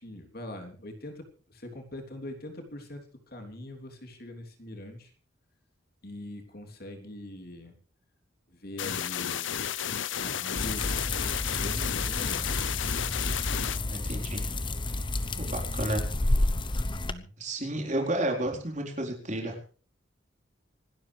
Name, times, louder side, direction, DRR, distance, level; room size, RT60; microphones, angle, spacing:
voice 1, 0.0-5.1 6.0-7.7 8.5-9.5 10.2-13.4 16.9-17.3, left 1 dB, 55° left, 4 dB, 3.3 m, -43 dB
sound 1, 8.8-13.8, left 9 dB, 85° left, 0.7 m, -32 dB
sound 2, 10.6-17.1, left 2 dB, 25° left, 0.9 m, -30 dB
voice 2, 13.9-14.5 15.4-16.0 17.4-19.8, right 1 dB, 40° right, 1 dB, 4.2 m, -32 dB
26.5 x 12.5 x 3.4 m, 0.41 s
head